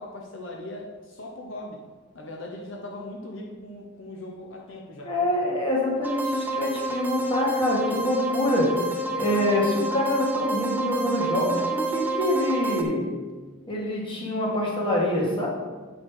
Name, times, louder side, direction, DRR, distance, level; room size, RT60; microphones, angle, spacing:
voice 1, 0.0-1.8 2.1-5.1, left 1 dB, 65° left, 0 dB, 1.0 m, -39 dB
voice 2, 5.0-13.1 13.7-15.5, left 1 dB, 25° left, -3 dB, 1.9 m, -25 dB
sound 1, 6.0-12.8, right 2 dB, 10° right, 0.7 m, -29 dB
8.6 x 5.7 x 4.9 m, 1.4 s
head